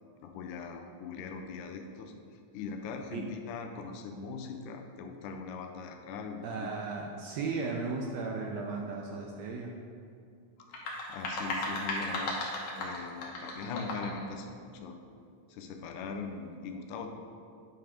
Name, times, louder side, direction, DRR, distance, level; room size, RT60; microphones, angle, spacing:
voice 1, 0.2-2.1 2.5-6.7 10.7-15.0 15.5-17.1, left 4 dB, 85° left, 4 dB, 2.2 m, -41 dB
voice 2, 6.4-9.7, right 4 dB, 80° right, 0 dB, 1.6 m, -35 dB
sound 1, 10.6-14.2, left 2 dB, 65° left, 2.0 m, -35 dB
9.1 x 3.5 x 4.9 m, 2.3 s
omnidirectional pair, 3.5 m